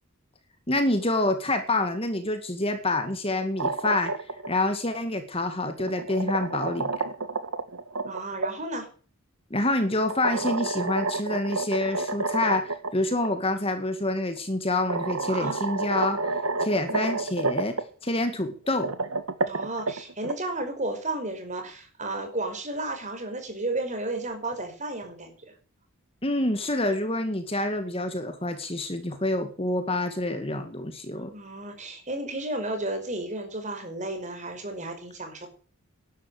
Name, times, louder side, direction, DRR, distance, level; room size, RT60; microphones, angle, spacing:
voice 1, 0.7-4.1 4.5-7.1 9.5-16.2 16.6-18.9 26.2-31.3, left 2 dB, 25° left, 8 dB, 2.0 m, -27 dB
sound 1, 3.4-4.5 5.6-8.5 10.1-12.9 13.2-13.3 14.4-14.5 14.9-17.8 18.6-20.3, right 3 dB, 80° right, 1.7 m, -29 dB
voice 2, 8.1-8.9 15.3-15.6 19.4-25.5 31.3-35.5, right 2 dB, 35° right, 6 dB, 5.0 m, -33 dB
12.5 x 11.5 x 7.9 m, 0.40 s
head